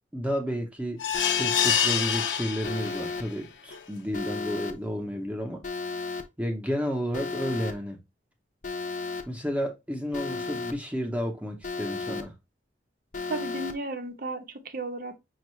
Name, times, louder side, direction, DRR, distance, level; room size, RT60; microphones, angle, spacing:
voice 1, 0.1-5.6 6.4-8.0 9.3-12.3, equal, 5° right, 0.6 m, -31 dB
sound 1, 1.0-3.3 3.7-3.8 4.2-4.3, left 8 dB, 90° left, 0.6 m, -26 dB
Alarm, 1.1-1.7 2.6-3.2 4.1-4.7 5.6-6.2 7.1-7.7 8.6-9.2 10.1-10.7 11.6-12.2 13.1-13.7, left 4 dB, 45° left, 0.5 m, -33 dB
voice 2, 13.3-15.2, right 2 dB, 50° right, 0.6 m, -34 dB
5.2 x 2.3 x 3.0 m
head